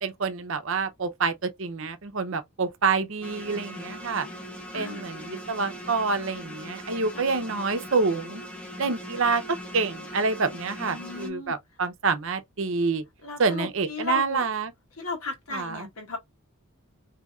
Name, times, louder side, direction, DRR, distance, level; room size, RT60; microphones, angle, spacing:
voice 1, 0.0-4.3 4.7-8.4 8.8-13.0 13.4-14.7 15.5-15.9, right 4 dB, 60° right, 0.6 m, -27 dB
sound 1, 3.2-11.3, equal, 5° left, 0.7 m, -40 dB
voice 2, 10.8-11.6 13.2-14.4 15.0-16.2, left 4 dB, 75° left, 1.3 m, -35 dB
4.1 x 2.8 x 2.3 m
head